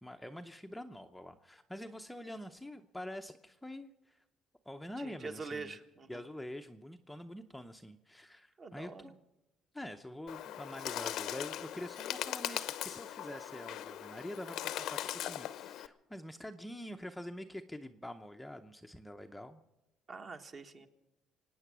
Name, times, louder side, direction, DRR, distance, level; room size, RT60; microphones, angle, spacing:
voice 1, 0.0-4.2 4.7-5.8 6.1-9.1 9.7-19.6, left 1 dB, 5° left, 6 dB, 0.7 m, -46 dB
voice 2, 5.0-6.2 8.6-9.1 20.1-20.9, right 4 dB, 35° right, 6 dB, 1.4 m, -45 dB
Bird, 10.3-15.9, left 12 dB, 70° left, 0.8 m, -40 dB
25.5 x 9.3 x 6.1 m, 0.96 s
cardioid pair, 135°, 0 cm